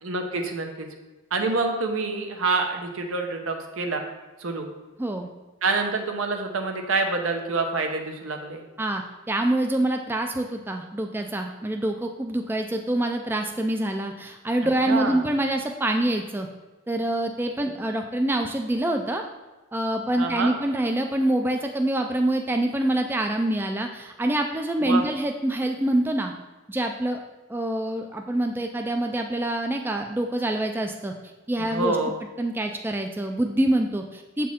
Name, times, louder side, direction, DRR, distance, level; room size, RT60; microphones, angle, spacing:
voice 1, 0.0-0.9 1.3-4.0 4.4-4.7 5.6-8.6 14.6-15.2 20.2-20.5 24.8-25.0 31.6-32.1, right 3 dB, 80° right, 4 dB, 0.9 m, -27 dB
voice 2, 8.8-16.5 16.9-19.2 19.7-26.3 26.7-27.2 27.5-31.1 31.5-32.0 32.4-34.5, right 1 dB, 10° right, 4 dB, 0.3 m, -26 dB
7.4 x 4.4 x 3.6 m, 1.2 s
head